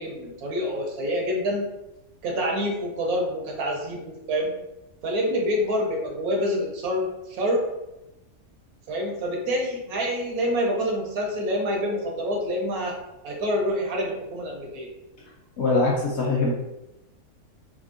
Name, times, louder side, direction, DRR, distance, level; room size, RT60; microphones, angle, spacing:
voice 1, 0.0-1.6 2.2-4.5 5.0-7.6 8.9-12.9 13.2-14.9, equal, 80° right, 0 dB, 1.2 m, -27 dB
voice 2, 15.6-16.5, left 3 dB, 60° left, -3 dB, 0.8 m, -22 dB
3.5 x 2.5 x 2.5 m, 0.93 s
omnidirectional pair, 1.6 m